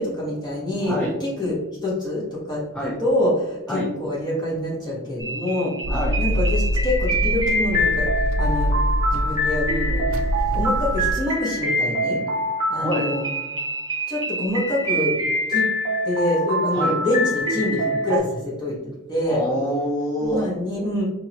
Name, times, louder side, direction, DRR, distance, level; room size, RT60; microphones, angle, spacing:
voice 1, 0.0-5.7 6.2-8.1 8.4-8.8 9.1-10.3 10.5-12.2 12.7-13.2 14.1-15.2 15.5-15.7 16.0-18.8 19.1-19.4 20.2-21.0, left 1 dB, 20° left, -5 dB, 1.4 m, -25 dB
voice 2, 0.8-1.2 2.7-3.0 3.7-3.9 5.9-6.2 12.8-13.1 16.7-17.0 19.3-20.4, equal, 5° left, -4 dB, 0.5 m, -26 dB
sound 1, 5.2-18.2, equal, 20° right, 1.2 m, -25 dB
sound 2, 5.8-11.1, equal, 70° right, 0.5 m, -24 dB
4.9 x 2.8 x 2.9 m, 0.99 s
head